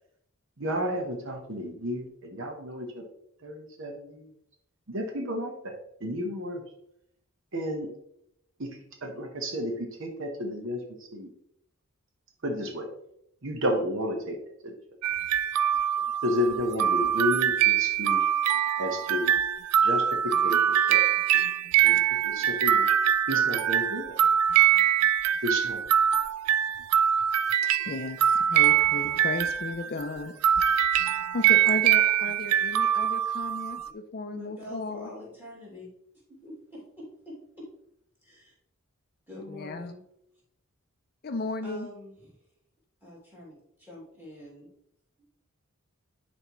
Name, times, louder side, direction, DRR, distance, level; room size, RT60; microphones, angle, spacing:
voice 1, 0.6-3.0 3.4-4.3 4.9-6.6 7.5-7.9 8.6-11.3 12.4-12.9 13.4-14.7 16.2-18.3 18.8-19.3 19.8-21.0 21.8-22.9 23.3-24.2 25.4-25.8, equal, 55° right, 3 dB, 1.1 m, -32 dB
sound 1, 15.0-30.1 30.4-33.9, right 10 dB, 90° right, 0.4 m, -23 dB
voice 2, 27.8-30.3 30.6-30.9 31.3-35.1 39.5-39.9 41.2-41.9, left 3 dB, 45° left, 7 dB, 0.5 m, -35 dB
voice 3, 34.3-35.9 36.3-37.7 38.2-38.5 39.3-40.0 41.6-42.3 43.0-44.7 45.2-45.3, left 1 dB, 10° right, -6 dB, 2.6 m, -45 dB
10.5 x 4.4 x 3.1 m, 0.76 s
head